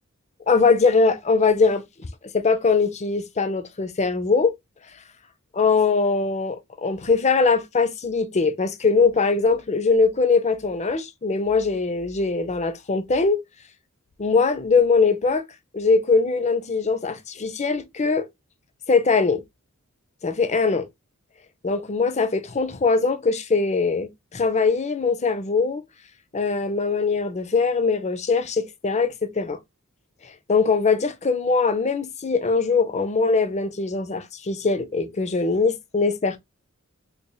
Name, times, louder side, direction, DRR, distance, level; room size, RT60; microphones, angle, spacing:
voice 1, 0.5-2.1 2.3-4.5 5.5-13.4 14.2-15.4 15.7-18.3 18.9-19.4 20.2-20.9 21.6-25.8 26.3-29.6 30.2-36.4, left 4 dB, 30° left, 0.6 m, -21 dB
4.1 x 3.4 x 2.3 m
head